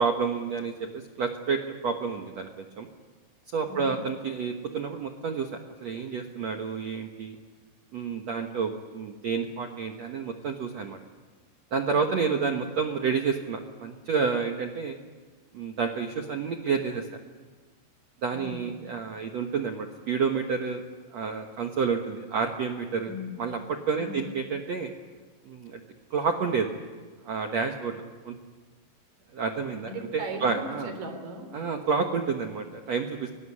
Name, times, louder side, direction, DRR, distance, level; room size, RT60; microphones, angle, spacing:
voice 1, 0.0-2.9 3.5-7.3 7.9-11.0 11.7-15.0 15.5-17.1 18.2-20.8 21.1-23.1 23.4-23.6 23.9-24.9 25.4-25.8 26.1-26.7 27.2-28.3 29.3-29.9 30.4-30.9 31.5-33.3, right 5 dB, 70° right, 4 dB, 1.6 m, -29 dB
voice 2, 3.7-4.0 18.3-18.7 23.1-23.4 24.0-24.3 29.8-31.5, equal, 50° right, 6 dB, 5.0 m, -39 dB
23.5 x 19.5 x 9.9 m, 1.4 s
omnidirectional pair, 5.1 m